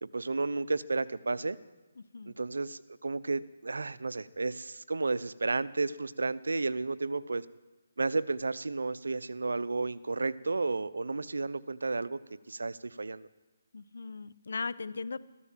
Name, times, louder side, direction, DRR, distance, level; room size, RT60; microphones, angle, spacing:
voice 1, 0.0-1.6 2.3-7.4 8.0-12.2 12.5-13.3, right 3 dB, 90° right, 16 dB, 0.7 m, -32 dB
voice 2, 13.7-15.2, left 4 dB, 75° left, 17 dB, 0.7 m, -38 dB
14.0 x 12.5 x 7.5 m, 1.1 s
hypercardioid pair, 160°, 0 cm